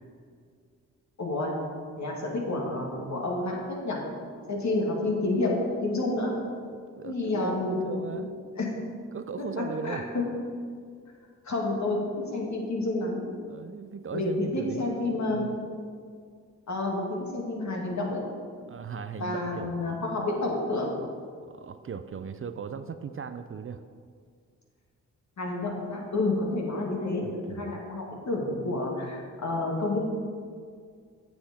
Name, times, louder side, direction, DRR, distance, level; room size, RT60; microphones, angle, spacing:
voice 1, 1.2-1.6 2.0-4.1 4.5-6.4 7.0-8.1 8.5-8.9 9.4-10.4 11.4-13.2 14.1-15.5 16.7-18.2 19.2-20.9 25.4-30.0, left 2 dB, 55° left, -1 dB, 2.3 m, -29 dB
voice 2, 6.6-8.3 9.1-10.0 13.5-14.8 15.3-15.6 18.7-19.9 21.5-23.8 27.5-27.8, right 6 dB, 40° right, 10 dB, 0.5 m, -38 dB
8.5 x 7.7 x 4.3 m, 2.1 s
supercardioid pair, 45°, 34 cm